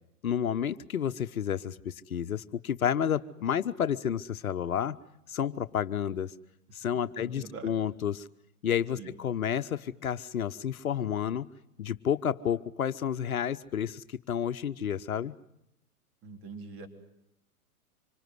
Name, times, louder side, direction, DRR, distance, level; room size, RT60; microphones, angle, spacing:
voice 1, 0.2-5.0 5.3-6.3 6.7-8.3 8.6-11.5 11.8-15.3, left 9 dB, 65° left, 11 dB, 1.0 m, -30 dB
voice 2, 7.2-7.8 8.9-9.2 16.2-16.9, right 4 dB, 30° right, 5 dB, 3.7 m, -43 dB
26.0 x 25.0 x 7.9 m, 0.82 s
figure-of-eight pair, 110°, 45 cm